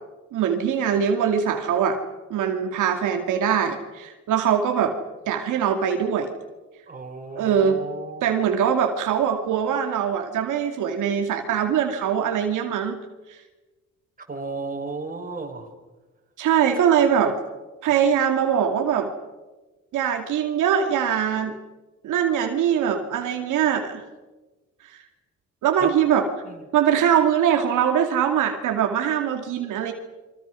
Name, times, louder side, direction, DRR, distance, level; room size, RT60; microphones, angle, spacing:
voice 1, 0.3-2.0 2.3-4.9 5.3-6.3 7.4-7.8 8.2-13.0 13.3-13.4 16.4-17.4 17.8-19.1 19.9-21.5 22.0-24.0 24.8-25.0 25.6-26.2 26.7-29.9, right 8 dB, 85° right, 4 dB, 2.4 m, -22 dB
voice 2, 6.9-8.3 14.3-15.7 25.8-26.0 26.4-26.6, right 3 dB, 30° right, 3 dB, 5.2 m, -33 dB
29.5 x 24.5 x 6.3 m, 1.2 s
cardioid pair, 90°, 30 cm